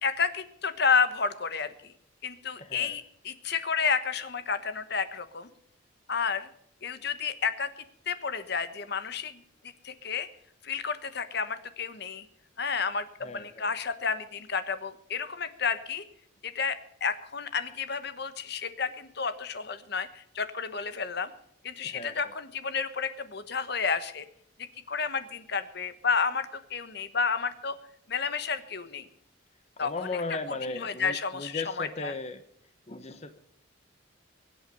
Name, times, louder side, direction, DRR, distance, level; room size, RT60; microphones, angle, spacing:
voice 1, 0.0-1.9 2.2-5.5 6.1-6.5 6.8-7.7 8.1-9.4 9.8-10.3 10.6-12.2 12.6-16.0 16.4-21.3 21.6-24.2 24.9-27.8 28.1-29.1 29.8-30.1 30.5-32.1, left 5 dB, 55° left, 11 dB, 1.2 m, -31 dB
voice 2, 2.6-3.0 13.2-13.7 21.8-22.2 29.8-32.4 32.9-33.4, left 3 dB, 35° left, 9 dB, 1.0 m, -36 dB
23.0 x 8.6 x 5.3 m, 0.71 s
head